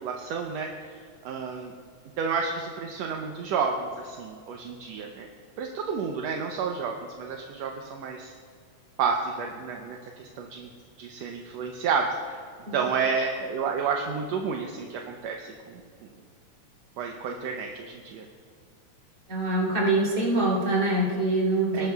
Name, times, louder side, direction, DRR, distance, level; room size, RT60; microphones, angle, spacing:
voice 1, 0.0-1.7 2.2-5.3 5.6-8.3 9.0-10.7 11.0-12.4 12.7-15.8 17.0-18.3 21.7-21.9, right 5 dB, 75° right, 2 dB, 1.7 m, -30 dB
voice 2, 19.3-21.9, right 2 dB, 30° right, -4 dB, 3.6 m, -24 dB
19.5 x 12.0 x 2.3 m, 2.2 s
omnidirectional pair, 3.4 m